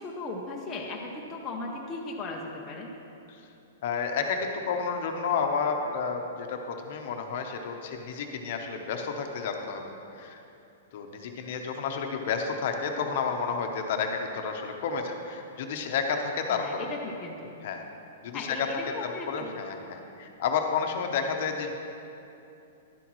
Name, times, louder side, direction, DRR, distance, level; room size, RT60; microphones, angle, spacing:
voice 1, 0.0-2.9 16.5-17.5 18.3-19.5, left 3 dB, 15° left, -2 dB, 0.6 m, -37 dB
voice 2, 3.8-10.4 10.9-16.9 17.6-17.8 18.2-18.7 19.0-21.7, left 5 dB, 45° left, 4 dB, 0.8 m, -31 dB
11.5 x 11.0 x 3.1 m, 2.8 s
hypercardioid pair, 175°, 0 cm